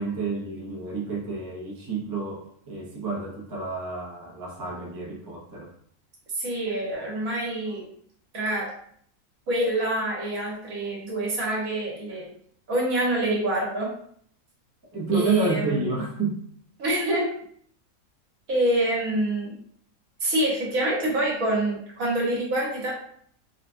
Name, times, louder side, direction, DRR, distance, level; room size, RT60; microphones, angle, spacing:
voice 1, 0.0-5.7 14.9-16.4, right 4 dB, 30° right, -3 dB, 0.3 m, -29 dB
voice 2, 6.3-7.9 8.3-8.7 9.5-12.3 12.7-13.9 15.1-15.9 16.8-17.3 18.5-19.5 20.2-22.9, right 1 dB, 75° right, -4 dB, 1.5 m, -26 dB
4.0 x 2.1 x 2.5 m, 0.62 s
omnidirectional pair, 1.5 m